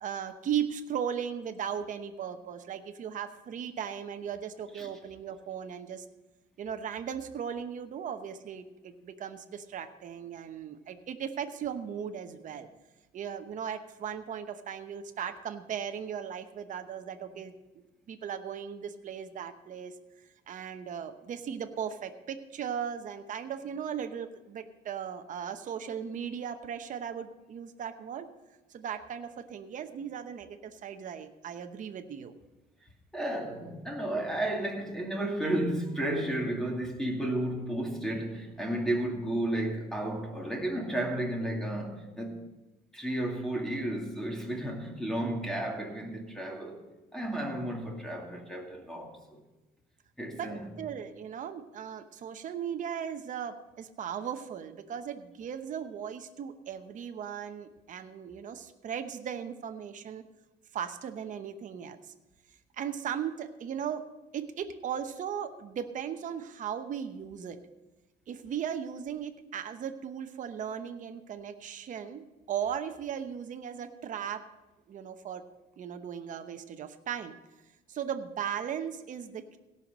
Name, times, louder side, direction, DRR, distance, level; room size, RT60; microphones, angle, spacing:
voice 1, 0.0-6.0 6.6-12.7 13.1-19.9 20.5-28.3 28.7-32.3 50.3-50.5 50.8-60.2 60.7-62.1 62.8-64.1 64.3-67.6 68.3-74.4 74.9-75.4 75.8-77.3 77.9-79.6, right 8 dB, 50° right, 7 dB, 0.9 m, -37 dB
voice 2, 33.1-42.4 42.9-46.8 47.1-49.4 50.2-50.7, right 1 dB, 5° left, 0 dB, 2.4 m, -33 dB
17.0 x 5.8 x 6.2 m, 1.1 s
cardioid pair, 110°, 17 cm